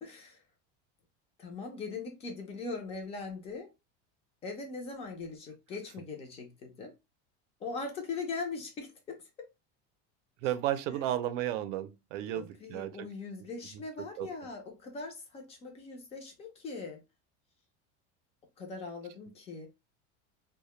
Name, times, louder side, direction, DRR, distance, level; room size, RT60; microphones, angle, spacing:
voice 1, 0.0-0.4 1.4-3.7 4.4-6.9 7.6-9.2 10.4-10.5 12.3-17.0 18.6-19.7, left 4 dB, 20° left, 0.4 m, -40 dB
voice 2, 10.4-13.1 14.2-14.3, right 12 dB, 85° right, 0.5 m, -33 dB
2.1 x 2.0 x 2.9 m
cardioid pair, 165°, 35 cm